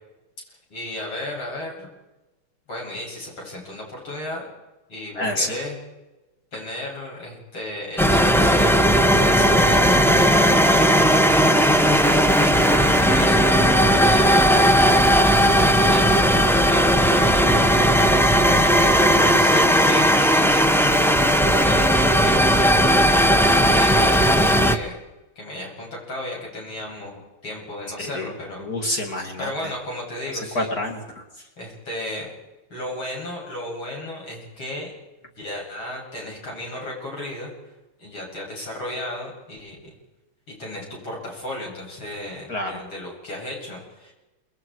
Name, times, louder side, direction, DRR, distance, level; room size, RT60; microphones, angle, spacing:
voice 1, 0.7-1.9 2.7-4.5 4.9-5.8 6.5-8.7 9.2-11.5 12.0-14.6 15.4-17.8 19.1-25.0 25.4-28.7 29.4-30.7 31.6-32.3 32.7-34.9 35.2-37.5 38.0-39.9 40.6-44.1, left 1 dB, 70° left, -2 dB, 9.0 m, -34 dB
voice 2, 5.1-5.5 8.9-9.0 28.0-29.7 30.5-31.5 42.5-42.8, left 1 dB, 45° left, 2 dB, 2.9 m, -28 dB
sound 1, 8.0-24.8, equal, 5° left, 0.5 m, -17 dB
29.5 x 21.5 x 4.8 m, 1.1 s
omnidirectional pair, 2.3 m